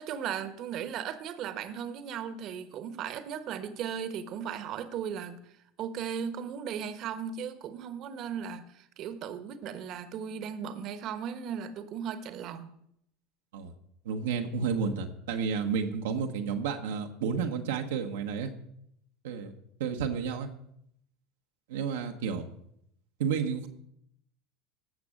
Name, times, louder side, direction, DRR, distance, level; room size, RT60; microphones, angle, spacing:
voice 1, 0.0-5.4 5.8-12.7, right 8 dB, 50° right, 1.2 m, -37 dB
voice 2, 14.0-18.5 19.2-19.5 19.8-20.5 21.7-22.4 23.2-23.7, right 6 dB, 80° right, 1.1 m, -31 dB
16.0 x 6.1 x 6.4 m
hypercardioid pair, 90°, 0 cm